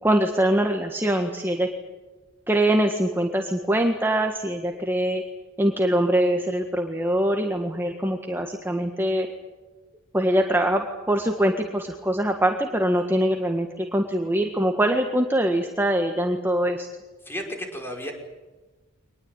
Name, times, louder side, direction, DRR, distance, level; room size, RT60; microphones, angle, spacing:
voice 1, 0.0-1.7 2.5-5.2 5.6-9.3 10.1-16.9, right 1 dB, 10° right, 3 dB, 1.7 m, -23 dB
voice 2, 17.2-18.1, equal, 10° left, 3 dB, 5.2 m, -33 dB
24.5 x 20.5 x 9.0 m, 1.2 s
head